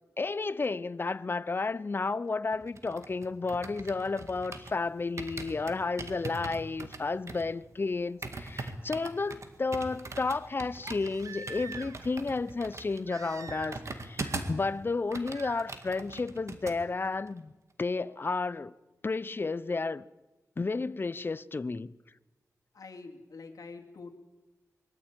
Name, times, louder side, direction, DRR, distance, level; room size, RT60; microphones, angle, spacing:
voice 1, 0.2-17.5 17.8-18.7 19.0-20.0 20.6-21.9, left 3 dB, 35° left, 0.6 m, -32 dB
sound 1, 2.5-4.8 5.2-14.7 14.9-16.8 17.1-17.3, right 2 dB, 55° right, 1.9 m, -41 dB
Crying sobbing, 8.1-8.2 10.8-12.1 13.1-13.9 14.2-14.7 15.3-15.7 17.3-17.4, right 4 dB, 70° right, 1.6 m, -45 dB
voice 2, 22.7-24.2, left 4 dB, 80° left, 2.2 m, -46 dB
22.5 x 14.0 x 8.9 m
wide cardioid pair, 100°, 6 cm